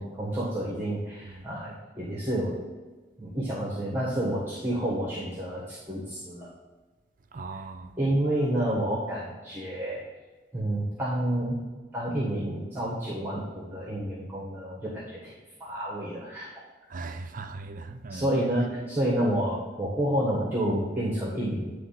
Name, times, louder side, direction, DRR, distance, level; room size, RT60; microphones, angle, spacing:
voice 1, 0.0-2.6 3.2-6.5 8.0-10.0 10.5-11.6 11.9-15.3 15.6-16.5 18.1-21.7, right 1 dB, 10° right, -6 dB, 1.4 m, -29 dB
voice 2, 7.3-7.9 16.9-18.3, right 3 dB, 50° right, 7 dB, 0.6 m, -39 dB
9.5 x 3.3 x 5.7 m, 1.3 s
head